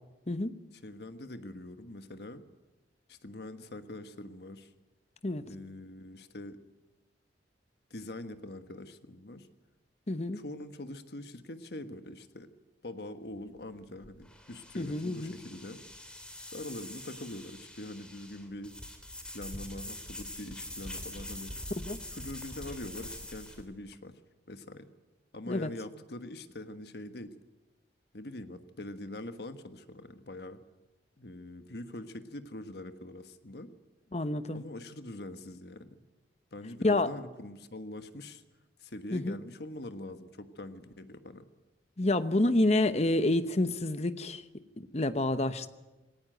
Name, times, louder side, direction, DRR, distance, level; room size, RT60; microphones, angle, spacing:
voice 1, 0.7-2.4 3.1-4.7 5.5-6.6 7.9-9.5 10.3-12.5 12.8-15.8 16.4-18.7 19.3-21.6 22.1-24.1 24.5-24.9 25.3-27.3 28.1-30.6 31.2-33.7 34.5-36.0 36.5-38.4 38.8-41.5, left 1 dB, 60° left, 9 dB, 1.4 m, -43 dB
voice 2, 10.1-10.4 14.8-15.3 21.8-22.0 25.5-25.7 34.1-34.6 36.8-37.1 39.1-39.3 42.0-44.4 44.8-45.7, left 2 dB, 35° left, 12 dB, 1.0 m, -28 dB
sound 1, 13.2-23.6, left 1 dB, 5° left, 3.0 m, -44 dB
19.0 x 18.0 x 9.2 m, 1.1 s
head